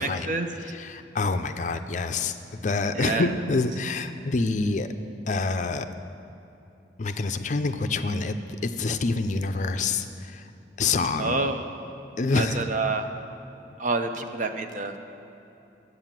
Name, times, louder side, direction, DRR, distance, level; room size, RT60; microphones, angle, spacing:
voice 1, 0.0-0.5 2.9-3.3 11.2-11.7 12.3-13.0 13.8-15.0, right 3 dB, 45° right, 6 dB, 0.7 m, -28 dB
voice 2, 0.6-2.3 2.6-4.9 5.3-5.9 7.0-10.4 10.8-11.4 12.2-12.7, left 3 dB, 45° left, 9 dB, 0.5 m, -27 dB
11.0 x 8.1 x 7.4 m, 3.0 s
head